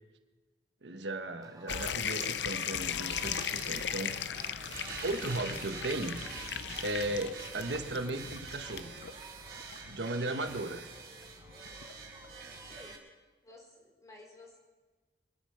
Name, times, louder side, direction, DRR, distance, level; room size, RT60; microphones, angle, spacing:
voice 1, 0.8-4.1 4.4-4.5 5.0-6.2 6.8-8.9 9.8-10.8, right 2 dB, 85° right, 7 dB, 1.2 m, -36 dB
sound 1, 1.4-12.9, right 3 dB, 20° right, 0.7 m, -54 dB
sound 2, 1.7-13.0, left 8 dB, 75° left, 0.6 m, -39 dB
sound 3, 2.7-13.0, right 4 dB, 60° right, 4.2 m, -46 dB
voice 2, 12.6-13.0 13.4-14.6, left 1 dB, 20° left, -1 dB, 4.1 m, -54 dB
25.0 x 10.0 x 5.7 m, 1.3 s
head